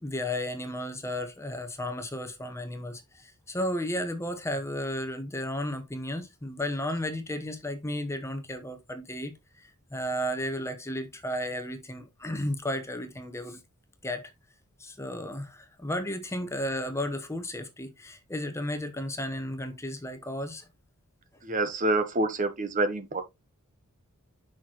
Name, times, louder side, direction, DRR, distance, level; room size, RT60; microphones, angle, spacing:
voice 1, 0.0-13.6 14.0-14.3 14.8-20.7, left 1 dB, 15° left, 1.0 m, -33 dB
voice 2, 21.4-23.2, right 2 dB, 35° right, 1.0 m, -27 dB
7.1 x 6.0 x 2.9 m
head